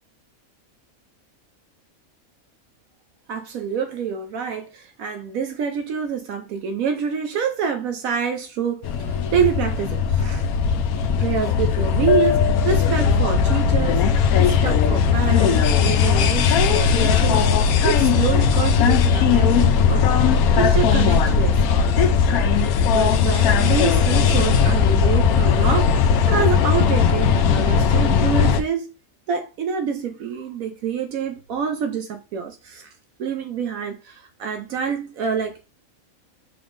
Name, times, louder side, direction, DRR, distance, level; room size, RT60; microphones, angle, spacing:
voice 1, 3.3-10.4 11.1-17.4 17.8-21.9 22.9-28.9 29.3-32.9 33.2-35.7, right 7 dB, 75° right, 1.1 m, -27 dB
sound 1, 8.8-28.6, left 6 dB, 80° left, 1.1 m, -18 dB
5.9 x 3.6 x 2.5 m
omnidirectional pair, 1.5 m